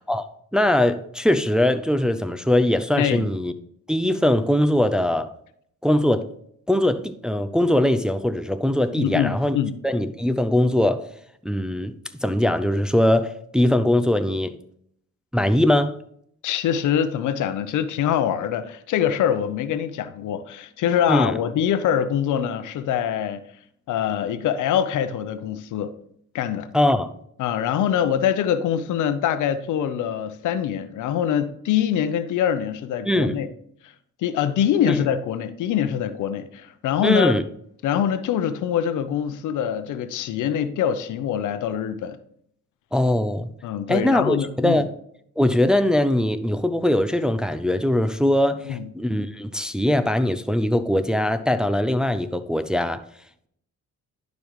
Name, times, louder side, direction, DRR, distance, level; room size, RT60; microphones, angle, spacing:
voice 1, 0.5-3.5 3.9-5.3 5.8-6.3 6.7-9.6 9.8-11.1 11.4-14.5 15.3-16.0 21.1-21.4 26.7-27.1 33.1-33.4 34.9-35.0 37.0-37.4 42.9-43.5 43.9-44.9 45.4-53.0, left 1 dB, 5° right, 0.5 m, -21 dB
voice 2, 9.0-9.7 16.4-23.4 23.9-25.9 26.3-26.7 27.4-33.5 33.8-33.9 34.2-37.4 37.8-42.2 43.6-44.8 48.7-48.9, left 9 dB, 80° left, 0.8 m, -24 dB
11.5 x 5.2 x 3.1 m
cardioid pair, 90°, 30 cm